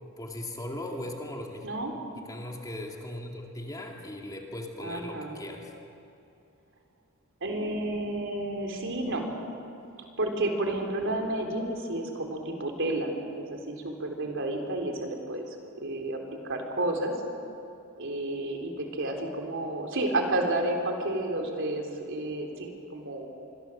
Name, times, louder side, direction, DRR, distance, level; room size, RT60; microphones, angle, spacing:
voice 1, 0.2-1.7 2.3-5.7, left 1 dB, 15° left, 0 dB, 2.6 m, -38 dB
voice 2, 4.8-5.4 7.4-9.4 10.2-16.2 16.4-17.1 18.0-23.3, right 1 dB, 60° right, 2 dB, 3.8 m, -31 dB
26.5 x 23.0 x 7.5 m, 2.8 s
head